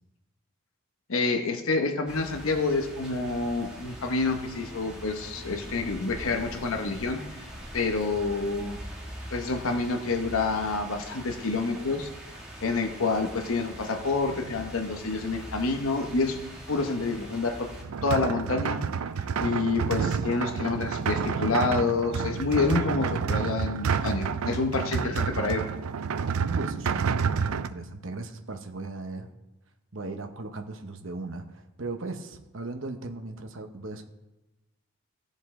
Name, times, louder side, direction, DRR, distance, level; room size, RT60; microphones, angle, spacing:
voice 1, 1.1-7.5 7.7-8.8 9.3-12.1 12.6-16.4 16.7-17.7 18.0-18.8 19.4-25.6, left 3 dB, 70° left, 5 dB, 0.9 m, -28 dB
sound 1, 2.1-17.8, equal, 5° right, 2.0 m, -42 dB
sound 2, 17.8-27.7, right 6 dB, 80° right, 0.4 m, -29 dB
voice 2, 26.4-29.3 29.9-34.0, right 2 dB, 60° right, 5 dB, 0.9 m, -37 dB
16.0 x 5.4 x 3.7 m, 0.99 s
head